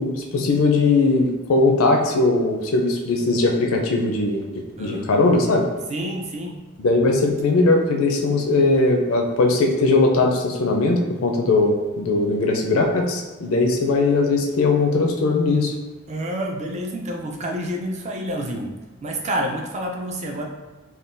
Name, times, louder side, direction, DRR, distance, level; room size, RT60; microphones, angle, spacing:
voice 1, 0.0-4.4 4.8-5.7 6.8-15.7, left 3 dB, 80° left, 2 dB, 0.4 m, -19 dB
voice 2, 4.8-5.1 5.9-6.6 16.1-18.7 19.0-20.4, equal, 35° right, 1 dB, 0.4 m, -28 dB
3.6 x 2.2 x 2.5 m, 1.2 s
head